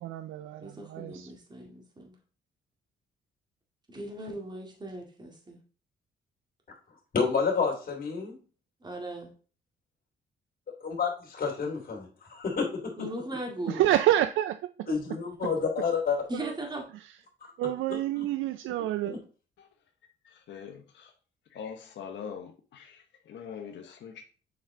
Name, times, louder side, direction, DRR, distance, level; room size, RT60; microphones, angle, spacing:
voice 1, 0.0-1.3 13.8-14.5 16.3-16.5 17.6-19.1, right 13 dB, 80° right, 0.4 m, -27 dB
voice 2, 0.6-2.2 3.9-5.6 8.8-9.3 13.0-13.8 16.3-16.8, right 1 dB, 20° right, 2.0 m, -38 dB
voice 3, 7.1-8.4 10.8-13.0 14.9-16.2 17.4-17.5 18.2-18.3 19.1-19.2, left 5 dB, 45° left, 2.7 m, -29 dB
voice 4, 20.2-21.1 21.5-24.2, left 7 dB, 65° left, 1.0 m, -43 dB
7.2 x 4.6 x 3.8 m
cardioid pair, 90°, 20 cm